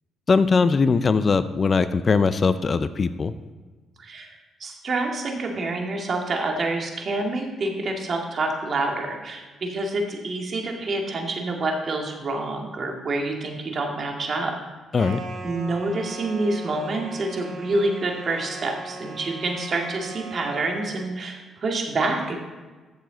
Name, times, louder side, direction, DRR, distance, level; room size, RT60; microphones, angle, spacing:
voice 1, 0.3-3.3 14.9-15.2, left 4 dB, 40° left, 13 dB, 0.5 m, -20 dB
voice 2, 4.0-4.3 4.6-14.5 15.4-22.4, right 2 dB, 45° right, 1 dB, 2.1 m, -27 dB
sound 1, 15.0-20.9, right 2 dB, 70° right, 2.0 m, -38 dB
14.0 x 6.7 x 4.0 m, 1.3 s
cardioid pair, 90°, 0 cm